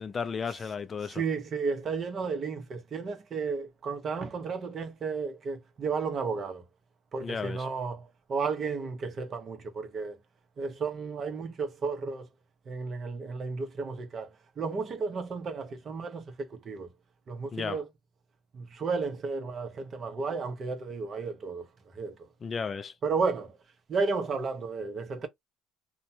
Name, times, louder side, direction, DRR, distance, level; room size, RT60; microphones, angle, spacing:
voice 1, 0.0-1.2 7.2-7.7 17.5-17.8 22.4-22.9, left 5 dB, 35° left, 0.4 m, -34 dB
voice 2, 1.1-6.6 7.1-10.2 10.6-12.3 12.7-16.9 17.3-17.9 18.5-21.7 21.9-22.2 23.0-23.6 23.9-25.3, right 4 dB, 45° right, 0.8 m, -33 dB
2.7 x 2.2 x 2.7 m
supercardioid pair, 85°, 0 cm